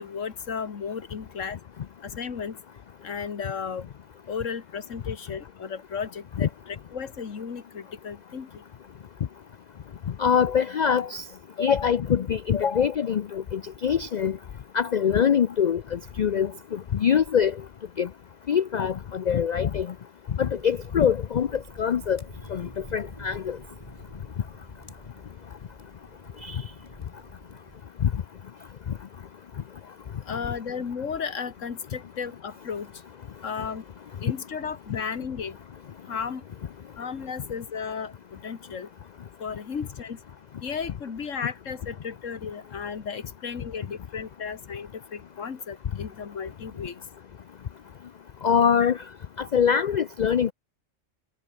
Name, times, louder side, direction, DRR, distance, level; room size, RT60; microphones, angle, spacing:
voice 1, 0.0-1.6 2.0-2.6 3.0-3.9 4.3-8.5 11.6-11.9 12.5-12.9 30.3-32.9 33.4-33.8 34.2-35.6 36.1-36.4 37.0-38.9 39.4-40.2 40.6-47.0, left 6 dB, 80° left, 1.9 m, -34 dB
voice 2, 10.2-11.2 11.6-14.4 14.7-17.5 18.0-18.1 18.5-19.9 20.4-21.5 21.8-22.2 22.5-23.6 26.4-26.6 28.0-28.1 48.4-49.0 49.4-50.5, left 7 dB, 55° left, 0.5 m, -24 dB
sound 1, 20.3-27.8, left 1 dB, 25° left, 6.0 m, -47 dB
omnidirectional pair, 1.3 m